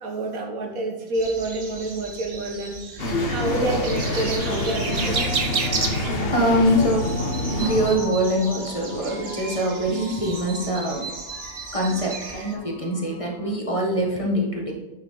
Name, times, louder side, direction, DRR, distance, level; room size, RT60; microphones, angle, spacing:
voice 1, 0.0-5.3, right 2 dB, 75° right, 3 dB, 1.7 m, -28 dB
sound 1, 1.1-12.5, right 4 dB, 50° right, 1.1 m, -33 dB
sound 2, 3.0-8.0, left 1 dB, 45° left, 1.2 m, -26 dB
sound 3, 3.6-13.6, left 7 dB, 85° left, 1.2 m, -40 dB
voice 2, 6.3-11.1 11.7-14.7, equal, 25° left, -1 dB, 1.3 m, -24 dB
9.3 x 6.4 x 3.9 m, 1.1 s
omnidirectional pair, 1.5 m